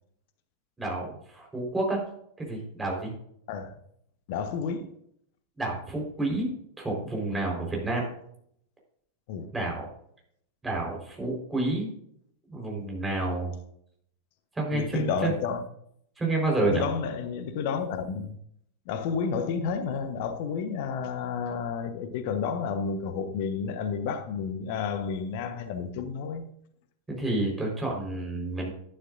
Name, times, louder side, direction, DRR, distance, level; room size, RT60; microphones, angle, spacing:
voice 1, 0.8-2.0 2.4-3.1 5.6-6.5 6.8-8.1 9.5-9.9 10.6-11.9 12.5-13.6 14.6-15.3 16.2-16.8 27.1-28.7, right 2 dB, 10° right, 4.5 m, -29 dB
voice 2, 3.5-3.8 4.3-4.9 7.9-8.0 9.3-9.5 14.7-15.6 16.7-18.4 18.9-26.5, left 6 dB, 50° left, 1.1 m, -31 dB
11.5 x 11.0 x 2.6 m
figure-of-eight pair, 90°, 0 cm